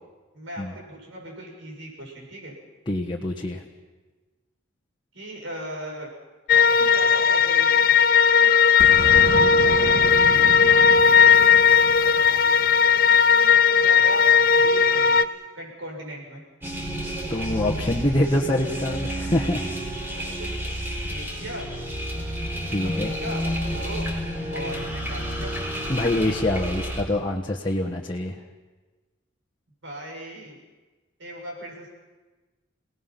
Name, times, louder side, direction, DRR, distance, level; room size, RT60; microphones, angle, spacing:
voice 1, 0.3-2.5 5.1-6.1 6.5-8.0 8.4-8.6 9.6-10.0 10.4-14.2 14.5-16.4 20.1-20.6 21.1-21.7 22.8-24.1 24.5-25.5 29.8-30.6 31.2-31.9, equal, 70° right, 0 dB, 6.8 m, -38 dB
voice 2, 2.9-3.6 17.3-19.6 22.7-23.1 25.9-28.4, left 1 dB, 25° left, -3 dB, 1.4 m, -25 dB
sound 1, 6.5-15.3, left 6 dB, 45° left, 0.6 m, -17 dB
Boom, 8.8-13.5, right 1 dB, 50° right, 1.5 m, -32 dB
sound 2, 16.6-27.0, equal, 10° right, 4.3 m, -30 dB
29.0 x 18.5 x 5.9 m, 1.2 s
head